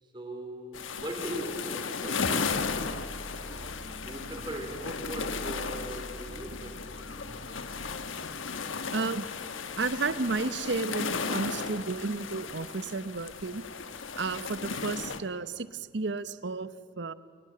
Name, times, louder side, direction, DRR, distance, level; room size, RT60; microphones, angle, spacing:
voice 1, 0.0-2.9 3.5-7.8, right 1 dB, 25° right, 4 dB, 3.5 m, -40 dB
sound 1, 0.7-15.2, left 5 dB, 85° left, 1.3 m, -35 dB
sound 2, 2.5-7.9, equal, 40° left, 2.6 m, -45 dB
voice 2, 8.9-9.3 9.8-13.6 14.1-16.7 17.0-17.1, right 3 dB, 60° right, 14 dB, 0.8 m, -32 dB
29.0 x 18.5 x 7.8 m, 2.2 s
head